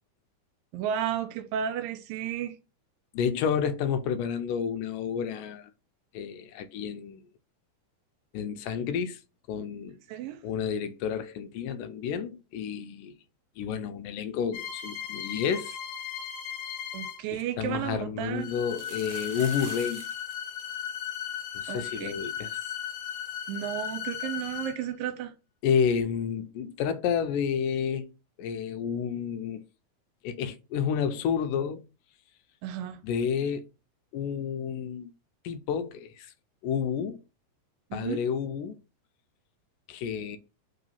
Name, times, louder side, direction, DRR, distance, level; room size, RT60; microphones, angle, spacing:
voice 1, 0.7-2.6 10.1-10.4 16.9-18.5 21.7-22.1 23.5-25.3 32.6-33.0 37.9-38.2, right 9 dB, 85° right, 2.4 m, -33 dB
voice 2, 3.1-5.7 6.1-7.2 8.3-9.2 9.5-10.0 10.4-13.1 13.6-15.8 17.3-20.0 21.6-22.6 25.6-28.1 28.4-29.6 30.2-31.8 33.0-33.6 34.1-35.1 35.4-36.3 36.6-37.2 37.9-38.7 39.9-40.4, left 7 dB, 80° left, 2.1 m, -30 dB
sound 1, 14.5-17.3 18.3-24.9 25.8-26.0, left 9 dB, 65° left, 2.1 m, -36 dB
sound 2, 17.0-17.1 17.4-17.5 18.6-20.3 20.6-20.7 20.9-21.2 21.7-21.8 22.1-22.2 24.2-24.3, right 8 dB, 65° right, 2.1 m, -45 dB
4.8 x 3.9 x 5.3 m
omnidirectional pair, 4.0 m